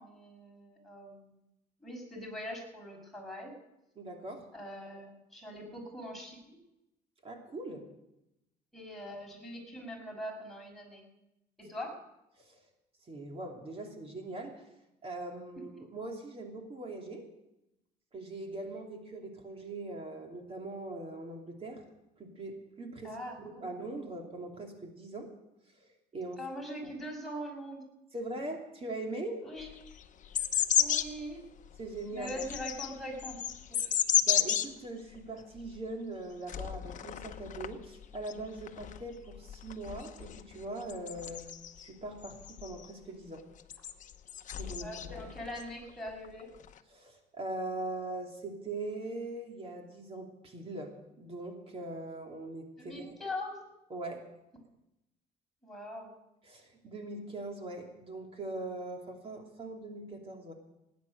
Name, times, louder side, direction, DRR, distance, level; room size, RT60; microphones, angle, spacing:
voice 1, 0.0-1.4 1.8-3.5 4.5-6.6 8.7-11.0 11.6-12.0 23.0-23.7 26.4-27.9 29.4-29.7 30.8-31.4 32.1-33.4 33.8-34.0 44.8-46.5 52.8-53.6 55.6-56.1, equal, ahead, -2 dB, 6.0 m, -42 dB
voice 2, 4.0-4.5 7.2-7.8 12.4-12.6 13.1-14.7 15.0-17.2 18.1-21.8 22.2-23.1 23.4-25.3 25.8-26.4 26.8-26.9 28.1-29.4 31.8-32.4 34.2-43.5 44.6-45.2 46.9-53.1 53.9-54.2 56.4-60.5, right 2 dB, 35° right, 2 dB, 2.7 m, -41 dB
sound 1, 29.6-31.2 31.7-34.7 35.1-35.2 35.6-35.8 36.5-37.7 38.0-41.9 42.2-42.9 43.6-45.7 46.1-46.8, left 9 dB, 50° left, 0.9 m, -33 dB
18.5 x 9.6 x 6.6 m, 0.90 s
cardioid pair, 110°, 17 cm